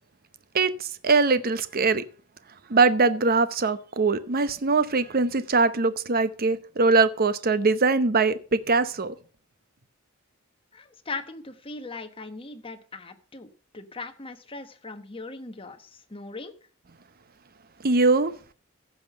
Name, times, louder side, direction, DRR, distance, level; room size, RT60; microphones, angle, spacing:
voice 1, 0.5-2.0 2.7-9.1 17.8-18.3, right 4 dB, 45° right, 0.8 m, -22 dB
voice 2, 10.7-13.5 13.7-16.5, left 3 dB, 25° left, 1.1 m, -39 dB
15.0 x 5.9 x 5.5 m
head